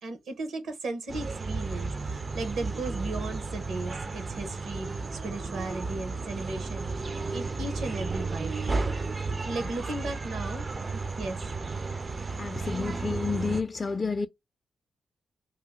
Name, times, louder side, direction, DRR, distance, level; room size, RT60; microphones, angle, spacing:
voice 1, 0.0-8.7 9.4-10.7 10.9-11.4, right 2 dB, 80° right, 1.0 m, -36 dB
sound 1, 1.1-13.6, right 3 dB, 40° right, 0.4 m, -33 dB
voice 2, 12.4-14.3, left 4 dB, 35° left, 0.4 m, -30 dB
2.8 x 2.5 x 3.6 m
cardioid pair, 75°, 0 cm